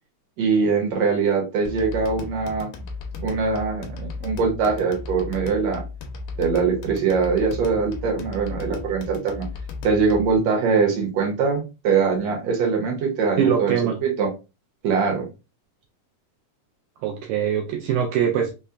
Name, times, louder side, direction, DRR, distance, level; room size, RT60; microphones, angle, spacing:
voice 1, 0.4-2.7 3.1-5.8 6.4-9.5 9.8-14.3 14.8-15.3, right 5 dB, 65° right, 1.8 m, -22 dB
sound 1, 1.7-10.4, left 4 dB, 85° left, 2.3 m, -35 dB
voice 2, 13.4-14.0 17.0-18.5, right 8 dB, 85° right, 1.7 m, -22 dB
5.5 x 2.1 x 2.3 m
omnidirectional pair, 3.8 m